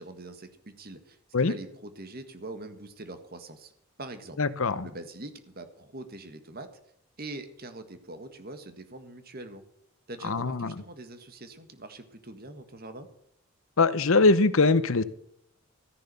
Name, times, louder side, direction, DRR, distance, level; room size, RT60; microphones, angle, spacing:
voice 1, 0.0-3.7 4.0-4.4 4.8-6.7 7.2-9.6 10.1-13.1, right 2 dB, 45° right, 9 dB, 1.7 m, -43 dB
voice 2, 4.4-4.9 10.2-10.7 13.8-15.0, left 3 dB, 65° left, 15 dB, 0.8 m, -22 dB
13.5 x 10.5 x 6.8 m, 0.71 s
head